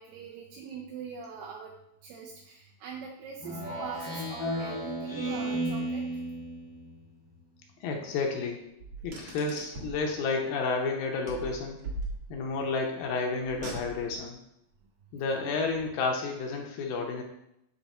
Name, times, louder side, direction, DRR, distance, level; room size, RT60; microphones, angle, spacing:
voice 1, 0.0-1.7 2.0-6.1, right 6 dB, 75° right, -2 dB, 2.3 m, -43 dB
Speech synthesizer, 3.4-6.9, right 1 dB, 15° left, 0.7 m, -33 dB
voice 2, 7.8-8.7 9.0-11.8 12.3-14.4 15.1-17.2, left 4 dB, 75° left, 1 dB, 2.3 m, -31 dB
Car, 8.8-10.0 11.3-12.6 13.4-14.3, right 2 dB, 60° right, 1.6 m, -39 dB
9.2 x 3.3 x 4.2 m, 0.81 s
omnidirectional pair, 4.5 m